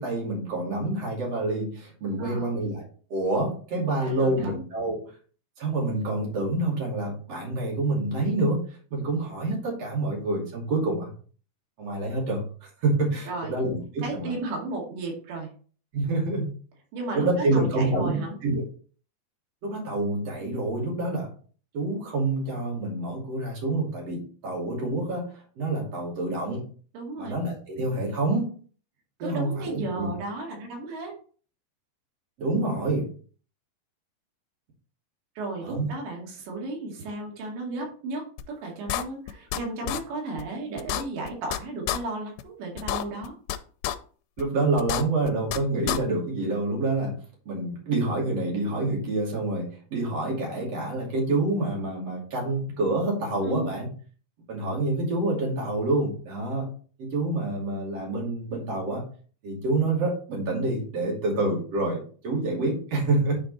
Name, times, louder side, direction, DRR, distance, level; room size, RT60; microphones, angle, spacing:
voice 1, 0.0-5.1 5.6-8.6 8.9-11.1 11.8-14.4 15.9-16.5 17.1-18.6 19.6-21.3 21.7-26.7 27.2-28.5 29.2-30.1 32.4-33.1 35.6-35.9 44.4-47.2 47.5-53.9 54.5-56.7 57.0-59.0 59.4-63.3, right 2 dB, 40° right, -2 dB, 3.1 m, -27 dB
voice 2, 4.0-4.6 13.3-13.5 14.0-15.5 16.9-18.4 26.9-27.3 29.2-31.1 35.4-43.3 53.4-53.7, right 2 dB, 85° right, -1 dB, 4.5 m, -34 dB
sound 1, 38.4-38.5 38.9-39.6 39.9-40.0 40.4-40.5 40.8-41.6 41.9-42.0 42.4-42.5 42.8-43.6 43.8-44.0 44.4-44.5 44.8-45.6 45.9-46.0, left 13 dB, 85° left, 2.7 m, -28 dB
9.2 x 4.4 x 4.2 m, 0.42 s
omnidirectional pair, 5.0 m